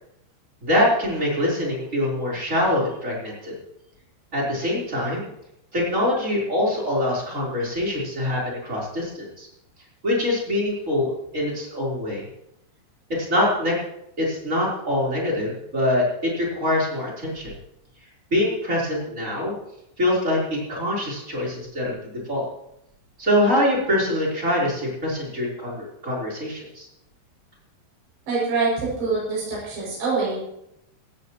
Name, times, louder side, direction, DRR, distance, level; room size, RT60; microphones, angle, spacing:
voice 1, 0.6-3.5 4.3-5.3 5.7-9.5 10.0-12.3 13.2-13.8 14.2-17.5 18.3-19.5 20.0-22.5 23.2-26.9, left 1 dB, 15° right, -4 dB, 4.1 m, -24 dB
voice 2, 28.3-30.4, right 4 dB, 60° right, -6 dB, 9.3 m, -25 dB
17.5 x 15.5 x 3.2 m, 0.80 s
omnidirectional pair, 5.4 m